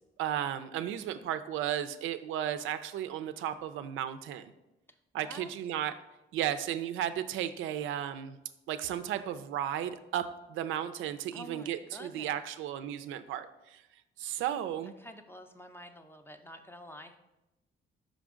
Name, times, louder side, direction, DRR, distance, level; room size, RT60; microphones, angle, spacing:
voice 1, 0.2-4.5 5.1-5.9 6.3-8.4 8.7-13.8 14.2-14.9, right 10 dB, 85° right, 10 dB, 0.4 m, -34 dB
voice 2, 4.9-5.5 11.3-12.4 15.0-17.2, left 1 dB, 10° left, 7 dB, 0.6 m, -49 dB
5.1 x 5.1 x 3.6 m, 0.96 s
cardioid pair, 90°, 20 cm